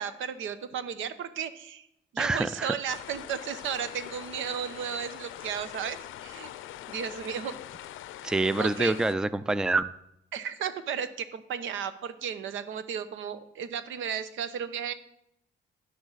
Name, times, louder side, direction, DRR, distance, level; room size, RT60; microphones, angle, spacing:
voice 1, 0.0-1.9 2.1-6.0 6.2-6.5 6.9-7.6 8.6-8.9 10.3-14.9, right 8 dB, 80° right, 12 dB, 0.9 m, -34 dB
voice 2, 2.2-2.7 8.2-9.9, right 2 dB, 5° right, 15 dB, 0.4 m, -26 dB
sound 1, 2.9-9.1, left 13 dB, 80° left, 0.5 m, -43 dB
11.0 x 10.5 x 4.0 m, 0.78 s
cardioid pair, 90°, 20 cm